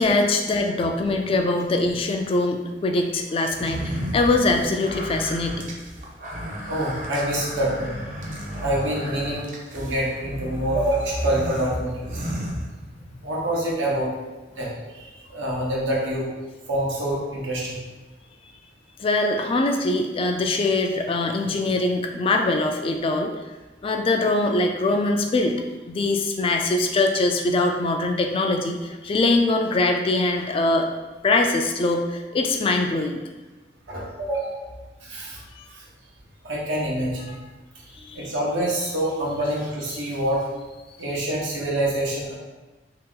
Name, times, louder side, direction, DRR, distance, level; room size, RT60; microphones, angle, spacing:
voice 1, 0.0-5.7 19.0-23.3 23.8-25.5 25.9-30.9 31.2-33.2 37.3-37.4 38.0-38.3, left 2 dB, 30° left, 3 dB, 0.3 m, -22 dB
sound 1, 3.5-13.2, equal, 45° right, 0.6 m, -33 dB
voice 2, 6.7-7.9 8.6-12.2 13.2-14.1 14.5-16.3 16.7-17.8 33.9-34.6 35.0-35.4 36.4-37.3 38.1-40.4 41.0-42.4, right 1 dB, 80° right, -5 dB, 0.9 m, -26 dB
3.0 x 2.9 x 3.7 m, 1.2 s
head